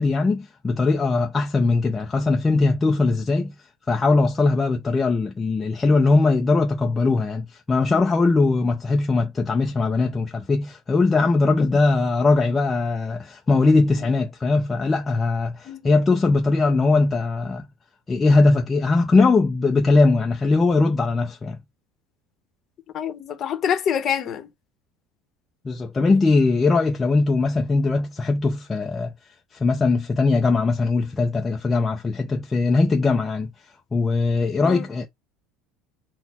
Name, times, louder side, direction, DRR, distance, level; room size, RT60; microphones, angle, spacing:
voice 1, 0.0-3.5 3.9-17.7 18.1-21.6 25.6-29.1 29.5-33.5 33.9-35.1, left 3 dB, 15° left, 0.4 m, -20 dB
voice 2, 15.7-16.0 22.9-24.5 34.6-34.9, left 8 dB, 30° left, 0.8 m, -26 dB
4.0 x 2.0 x 4.2 m
cardioid pair, 170°, 0 cm